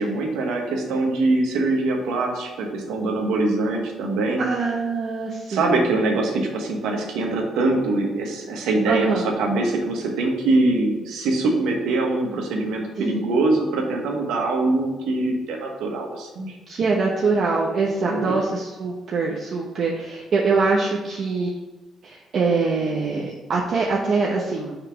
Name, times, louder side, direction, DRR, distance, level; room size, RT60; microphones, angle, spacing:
voice 1, 0.0-4.4 5.5-16.6 18.0-18.4, right 2 dB, 90° right, 1 dB, 1.2 m, -23 dB
voice 2, 4.4-5.6 8.9-9.2 13.0-13.2 16.7-21.5 22.0-24.8, right 4 dB, 55° right, -2 dB, 0.9 m, -23 dB
5.7 x 3.5 x 5.8 m, 1.2 s
cardioid pair, 90°, 0 cm